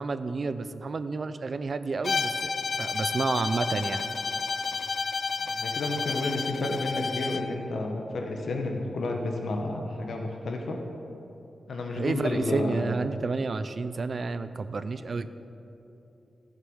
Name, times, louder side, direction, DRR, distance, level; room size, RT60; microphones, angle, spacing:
voice 1, 0.0-2.5 2.8-4.1 12.0-15.3, right 4 dB, 45° right, 11 dB, 0.4 m, -30 dB
Bowed string instrument, 2.0-7.5, left 4 dB, 55° left, 0.4 m, -31 dB
voice 2, 5.5-10.8 11.7-12.9, left 2 dB, 75° left, 2 dB, 1.2 m, -31 dB
14.5 x 6.7 x 6.3 m, 3.0 s
wide cardioid pair, 145°, 0 cm